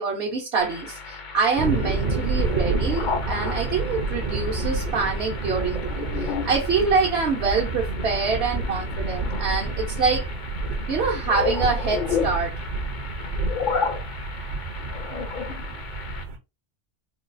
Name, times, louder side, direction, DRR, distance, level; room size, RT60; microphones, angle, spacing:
voice 1, 0.0-10.3 10.9-12.5, right 4 dB, 70° right, 1.0 m, -25 dB
sound 1, 0.6-16.2, left 6 dB, 55° left, 0.6 m, -33 dB
sound 2, 1.6-16.4, right 3 dB, 50° right, 0.7 m, -29 dB
3.9 x 2.3 x 2.5 m
omnidirectional pair, 1.1 m